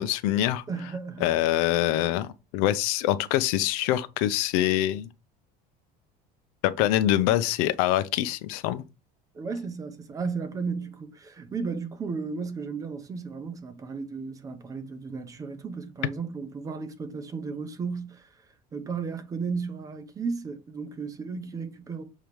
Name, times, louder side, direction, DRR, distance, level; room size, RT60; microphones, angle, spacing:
voice 1, 0.0-0.6 1.2-5.1 6.6-8.8, left 13 dB, 80° left, 0.7 m, -24 dB
voice 2, 0.7-1.4 9.3-18.3 18.7-22.0, right 5 dB, 20° right, 0.7 m, -34 dB
6.7 x 3.1 x 5.1 m
cardioid pair, 170°, 18 cm